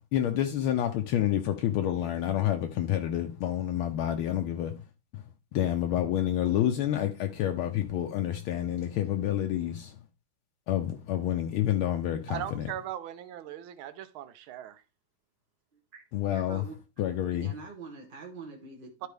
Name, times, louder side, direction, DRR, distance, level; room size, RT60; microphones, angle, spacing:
voice 1, 0.1-4.8 5.1-5.2 5.5-10.0 10.7-12.7 16.1-16.6 17.0-17.5, left 11 dB, 75° left, 1.5 m, -28 dB
voice 2, 12.3-14.8 19.0-19.1, right 11 dB, 75° right, 1.5 m, -39 dB
voice 3, 15.7-16.0 16.3-16.7 17.4-19.1, right 4 dB, 40° right, 0.8 m, -45 dB
11.5 x 4.6 x 3.3 m
omnidirectional pair, 2.4 m